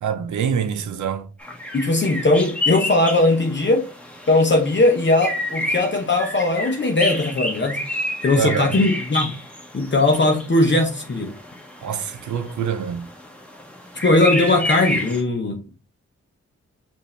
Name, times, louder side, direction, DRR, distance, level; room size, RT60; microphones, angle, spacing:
voice 1, 0.0-1.3 8.4-8.8 11.8-13.1, right 7 dB, 80° right, 0.6 m, -25 dB
sound 1, 1.4-15.2, left 1 dB, 5° left, 1.3 m, -30 dB
voice 2, 1.7-3.8 4.3-7.8 8.2-9.3 9.7-11.3 14.0-15.6, left 2 dB, 40° left, 0.9 m, -19 dB
5.3 x 2.7 x 3.2 m
cardioid pair, 65°, 29 cm